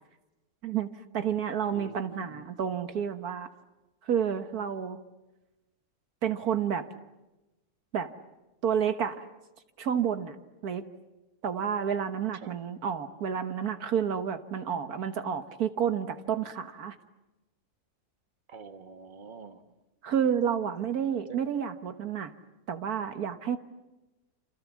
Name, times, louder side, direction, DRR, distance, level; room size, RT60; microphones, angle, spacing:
voice 1, 0.6-3.5 4.0-5.0 6.2-6.9 7.9-8.1 8.6-9.2 9.8-10.4 10.6-10.8 11.4-16.9 20.0-22.3 22.7-23.6, right 8 dB, 75° right, 9 dB, 1.7 m, -30 dB
voice 2, 1.7-2.5 12.3-12.6 18.5-19.6 21.3-21.4, right 5 dB, 35° right, 8 dB, 1.6 m, -46 dB
28.5 x 27.5 x 7.4 m, 1.0 s
omnidirectional pair, 1.6 m